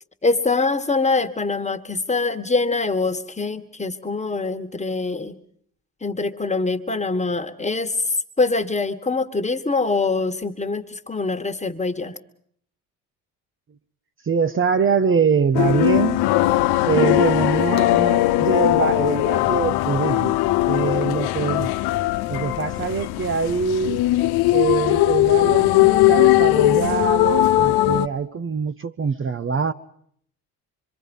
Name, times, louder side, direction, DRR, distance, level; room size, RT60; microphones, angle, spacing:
voice 1, 0.2-5.3 6.0-8.0 8.4-12.2, left 3 dB, 15° left, 1.7 m, -24 dB
voice 2, 14.2-16.2 16.9-20.4 20.7-21.7 22.3-24.0 24.5-29.7, right 5 dB, 35° right, 0.8 m, -23 dB
sound 1, 15.5-28.1, left 16 dB, 75° left, 0.8 m, -19 dB
25.5 x 24.5 x 5.5 m
supercardioid pair, 70°, 38 cm